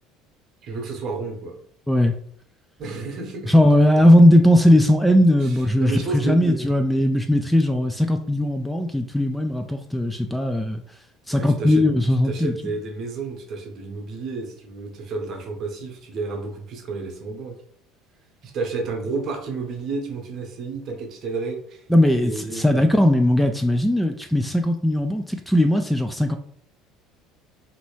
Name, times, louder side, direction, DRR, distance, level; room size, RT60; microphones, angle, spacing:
voice 1, 0.6-1.6 2.8-3.5 5.4-6.6 11.3-11.9 12.2-17.6 18.4-21.8 22.2-22.9, right 3 dB, 50° right, 2 dB, 0.8 m, -31 dB
voice 2, 3.5-10.8 11.3-12.5 21.9-26.4, left 1 dB, 5° left, 7 dB, 0.3 m, -18 dB
3.0 x 2.6 x 3.0 m, 0.62 s
figure-of-eight pair, 65°, 0 cm